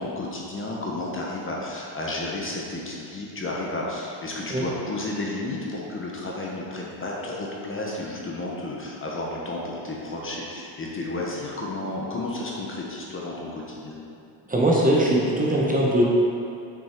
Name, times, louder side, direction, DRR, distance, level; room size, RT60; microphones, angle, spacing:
voice 1, 0.0-13.9, left 2 dB, 30° left, -3 dB, 1.0 m, -32 dB
voice 2, 14.5-16.0, right 1 dB, 20° right, -4 dB, 0.9 m, -20 dB
6.4 x 5.4 x 4.4 m, 2.6 s
cardioid pair, 145°, 43 cm